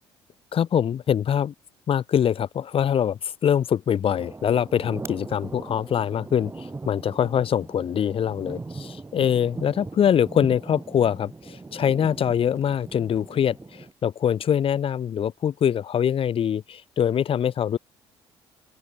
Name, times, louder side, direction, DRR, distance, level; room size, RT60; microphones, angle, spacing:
voice 1, 0.5-1.5 1.9-17.8, left 9 dB, 40° left, 0.9 m, -24 dB
sound 1, 4.1-13.9, right 3 dB, 20° right, 2.0 m, -40 dB
open air
figure-of-eight pair, 50°, 14 cm